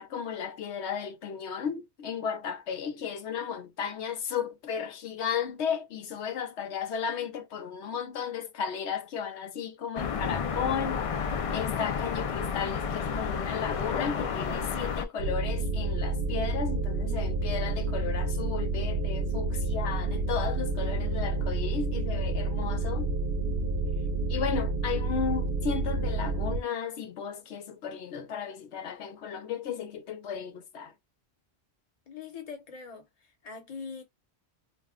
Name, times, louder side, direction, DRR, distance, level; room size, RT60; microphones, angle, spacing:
voice 1, 0.0-11.1 11.5-23.1 24.3-30.9, left 7 dB, 85° left, 1.0 m, -34 dB
sound 1, 10.0-15.1, left 6 dB, 65° left, 0.3 m, -31 dB
sound 2, 15.2-26.6, right 2 dB, 60° right, 0.7 m, -29 dB
voice 2, 32.1-34.0, left 5 dB, 40° left, 0.9 m, -42 dB
2.3 x 2.2 x 3.5 m
omnidirectional pair, 1.1 m